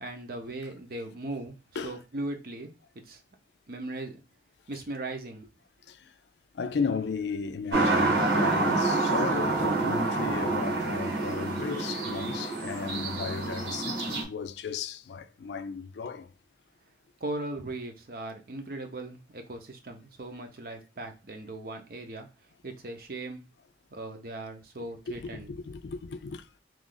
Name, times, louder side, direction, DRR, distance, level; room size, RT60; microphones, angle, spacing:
voice 1, 0.0-1.6 1.8-3.2 3.7-4.2 4.7-5.5 17.2-22.3 22.6-23.5 23.9-25.5, right 2 dB, 55° right, 0.7 m, -38 dB
voice 2, 6.5-16.3 25.1-26.5, left 5 dB, 75° left, 0.4 m, -35 dB
sound 1, 7.7-14.2, right 2 dB, 90° right, 1.4 m, -27 dB
3.1 x 2.5 x 3.8 m
head